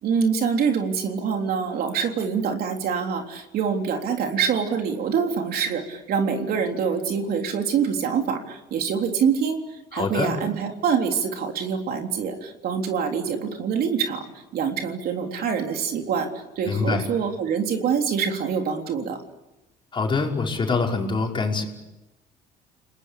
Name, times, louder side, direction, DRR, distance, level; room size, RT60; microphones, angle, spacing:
voice 1, 0.0-14.3 14.5-16.3 16.6-19.2, right 6 dB, 65° right, 4 dB, 3.6 m, -25 dB
voice 2, 9.9-10.3 16.7-17.0 19.9-21.6, left 4 dB, 30° left, 1 dB, 5.4 m, -24 dB
30.0 x 20.5 x 8.5 m, 0.95 s
cardioid pair, 110°, 17 cm